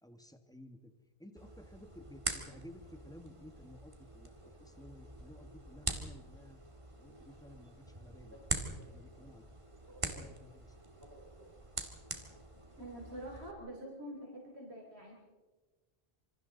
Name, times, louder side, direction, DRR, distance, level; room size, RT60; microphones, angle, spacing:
voice 1, 0.0-0.9 1.2-4.3 4.6-6.6 7.0-8.4 8.8-9.5 10.0-10.8, left 1 dB, 5° left, 7 dB, 1.6 m, -55 dB
sound 1, 1.4-13.5, right 2 dB, 30° right, 2.2 m, -44 dB
voice 2, 9.9-10.3 11.0-11.5 12.8-15.1, right 1 dB, 80° right, -2 dB, 3.9 m, -48 dB
27.0 x 26.0 x 4.0 m, 1.3 s
omnidirectional pair, 1.1 m